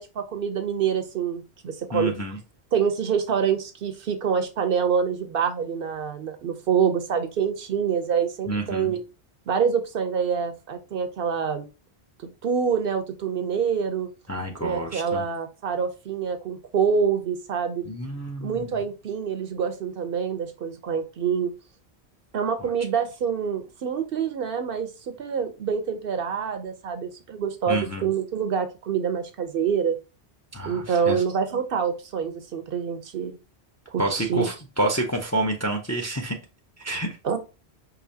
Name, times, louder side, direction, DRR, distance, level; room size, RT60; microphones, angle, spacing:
voice 1, 0.0-2.1 2.7-9.0 9.5-11.6 12.4-14.1 14.6-17.9 18.4-21.5 22.3-30.0 30.7-33.4 33.9-34.5 37.2-37.4, right 7 dB, 65° right, 8 dB, 0.7 m, -26 dB
voice 2, 1.9-2.4 8.5-8.9 14.3-15.2 17.9-18.7 22.6-22.7 27.7-28.1 30.5-31.2 34.0-36.4 36.8-37.2, right 1 dB, 20° left, 2 dB, 0.4 m, -28 dB
4.9 x 2.6 x 2.6 m, 0.30 s
omnidirectional pair, 1.1 m